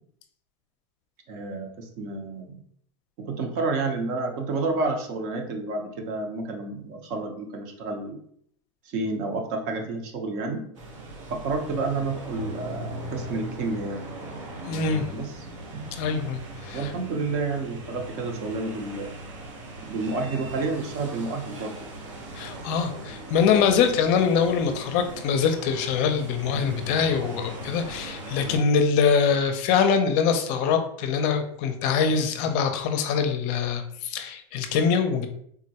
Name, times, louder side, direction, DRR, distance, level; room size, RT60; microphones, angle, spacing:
voice 1, 1.3-2.6 3.2-8.2 8.8-10.6 11.3-14.0 15.1-15.5 15.7-15.8 16.7-19.1 19.8-21.7, right 3 dB, 50° right, 3 dB, 0.8 m, -30 dB
sound 1, 10.7-28.6, right 1 dB, 80° right, 1.0 m, -39 dB
voice 2, 14.7-15.1 16.0-16.9 22.3-35.3, left 6 dB, 50° left, 6 dB, 0.5 m, -24 dB
3.6 x 2.2 x 2.8 m, 0.66 s
supercardioid pair, 120°, 16 cm